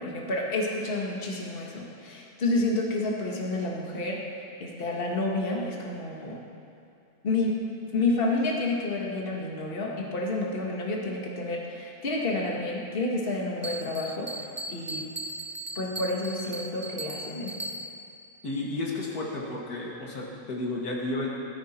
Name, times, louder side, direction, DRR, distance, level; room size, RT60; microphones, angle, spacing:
voice 1, 0.0-4.2 4.6-6.4 7.2-7.5 7.9-14.3 14.7-15.0 15.7-17.5, left 2 dB, 40° left, -2 dB, 1.7 m, -29 dB
Bell, 13.6-18.2, right 1 dB, 25° right, 0.4 m, -38 dB
voice 2, 18.4-21.3, left 2 dB, 80° left, -2 dB, 2.3 m, -32 dB
16.0 x 14.0 x 4.4 m, 2.5 s
omnidirectional pair, 1.6 m